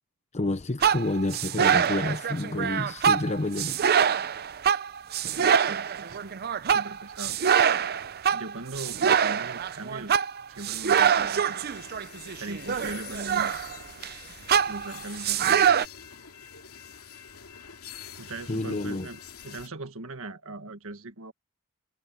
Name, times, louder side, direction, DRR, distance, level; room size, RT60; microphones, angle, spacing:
voice 1, 0.3-3.8 18.5-19.1, left 2 dB, 30° left, 0.8 m, -29 dB
sound 1, 0.8-14.1 14.5-15.9, right 8 dB, 45° right, 0.6 m, -25 dB
voice 2, 5.3-6.4 6.7-7.4 8.3-10.1 10.5-11.7 12.4-13.6 14.7-15.7 18.2-21.3, right 2 dB, 70° right, 1.8 m, -40 dB
sound 2, 10.9-19.7, left 7 dB, 80° left, 2.7 m, -46 dB
head